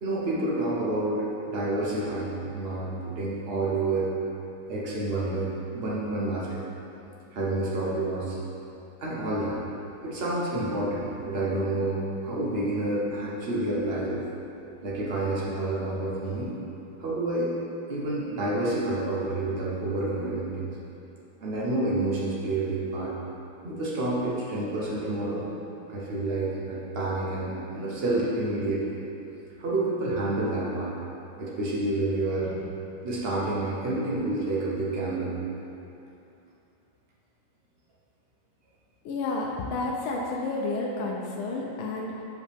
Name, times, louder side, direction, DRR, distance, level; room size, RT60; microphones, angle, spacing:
voice 1, 0.0-1.2 1.5-4.1 4.7-6.6 7.3-8.4 9.0-9.6 10.0-14.2 14.8-16.5 17.0-17.5 17.9-20.7 21.4-23.1 23.6-25.5 25.9-28.9 29.6-30.9 31.4-32.6 33.0-35.4, right 2 dB, 70° right, -6 dB, 0.5 m, -29 dB
voice 2, 39.0-42.2, left 3 dB, 80° left, -2 dB, 1.4 m, -30 dB
6.8 x 5.1 x 3.4 m, 2.9 s
omnidirectional pair, 2.3 m